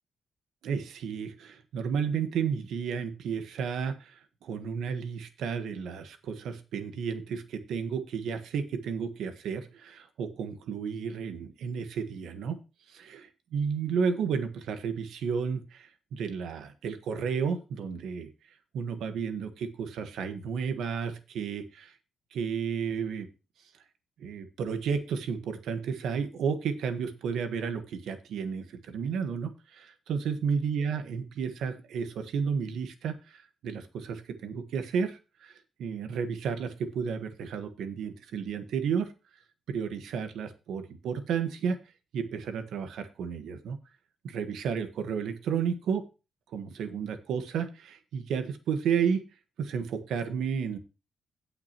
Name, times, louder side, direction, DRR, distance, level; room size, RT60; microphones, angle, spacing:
voice 1, 0.6-12.6 13.1-13.2 13.5-18.3 18.7-21.9 22.3-23.3 24.2-35.5 35.8-39.1 39.7-41.8 42.1-43.8 44.2-46.1 46.5-49.3 49.6-50.8, right 6 dB, 85° right, 8 dB, 1.3 m, -32 dB
17.0 x 5.9 x 3.0 m, 0.29 s
cardioid pair, 125°, 0 cm